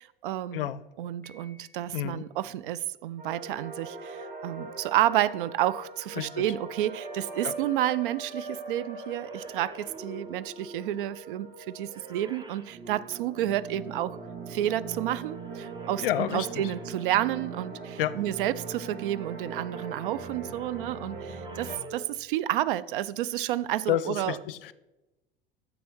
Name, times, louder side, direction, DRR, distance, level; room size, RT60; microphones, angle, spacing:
voice 1, 0.0-0.7 1.0-14.2 14.5-24.4, right 13 dB, 65° right, 0.5 m, -30 dB
Piano, 1.2-2.4, equal, 5° left, 1.3 m, -58 dB
voice 2, 1.9-2.2 6.1-6.4 7.4-7.5 16.0-16.6 18.0-18.2 23.9-24.7, left 12 dB, 70° left, 0.5 m, -30 dB
sound 1, 3.2-21.8, right 3 dB, 30° right, 2.1 m, -41 dB
sound 2, 9.0-14.0 15.2-17.8 20.2-22.1, right 2 dB, 15° right, 0.8 m, -48 dB
10.0 x 7.0 x 4.5 m
figure-of-eight pair, 75°, 29 cm